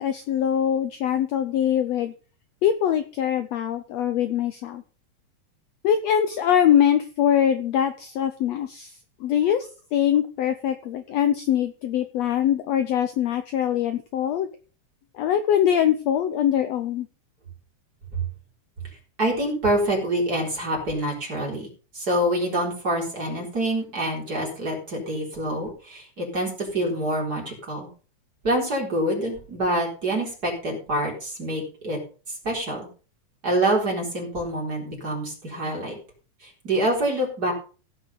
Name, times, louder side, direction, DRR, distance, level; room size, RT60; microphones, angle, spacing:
voice 1, 0.0-2.1 2.6-4.8 5.8-14.5 15.1-17.1, left 9 dB, 70° left, 9 dB, 1.7 m, -23 dB
voice 2, 19.2-21.7 21.9-27.9 28.4-32.0 32.3-32.9 33.4-36.0 36.4-37.5, right 1 dB, 30° right, -1 dB, 4.4 m, -26 dB
16.5 x 6.4 x 5.3 m, 0.37 s
omnidirectional pair, 3.6 m